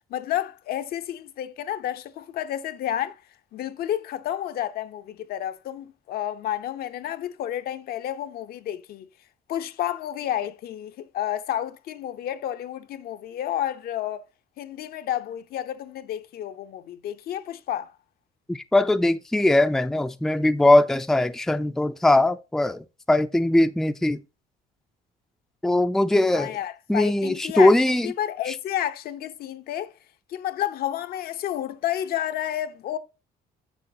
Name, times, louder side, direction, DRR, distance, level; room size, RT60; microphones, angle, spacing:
voice 1, 0.1-3.2 3.5-9.1 9.5-14.2 14.6-17.9 26.3-29.9 30.3-33.0, left 11 dB, 65° left, 0.7 m, -30 dB
voice 2, 18.5-24.2 25.6-26.6 26.9-28.1 28.5-28.6, left 1 dB, ahead, 0.4 m, -20 dB
7.4 x 6.4 x 2.7 m
cardioid pair, 110°, 17 cm